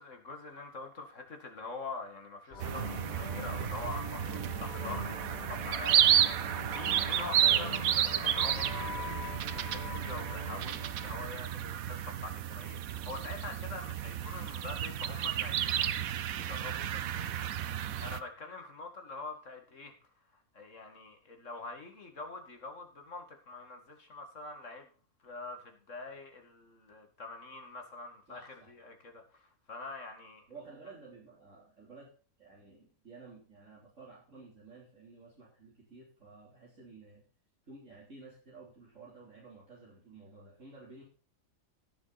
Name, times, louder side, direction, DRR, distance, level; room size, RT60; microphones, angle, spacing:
voice 1, 0.0-17.5 18.0-19.9 20.3-24.9 25.2-30.4, left 3 dB, 60° left, 4 dB, 2.6 m, -45 dB
sound 1, 2.5-11.5, left 2 dB, 35° left, 3.0 m, -43 dB
sound 2, 2.6-18.2, right 10 dB, 90° right, 1.2 m, -32 dB
voice 2, 28.3-28.7 30.5-32.1 32.4-37.2 37.7-41.0, right 3 dB, 60° right, -6 dB, 4.1 m, -53 dB
16.5 x 7.4 x 4.2 m, 0.39 s
omnidirectional pair, 1.4 m